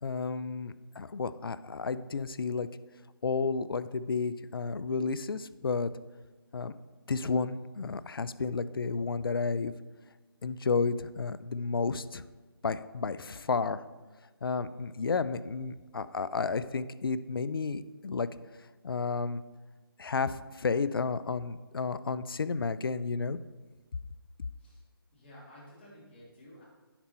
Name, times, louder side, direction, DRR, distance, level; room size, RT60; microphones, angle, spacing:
voice 1, 0.0-2.7 3.2-5.9 6.5-6.8 7.1-9.7 10.4-12.2 12.6-13.8 14.4-18.3 18.8-19.4 20.0-23.4, left 4 dB, 65° left, 15 dB, 0.5 m, -32 dB
voice 2, 25.1-26.6, equal, 25° left, -5 dB, 2.7 m, -53 dB
10.0 x 5.5 x 4.3 m, 1.3 s
figure-of-eight pair, 160°, 13 cm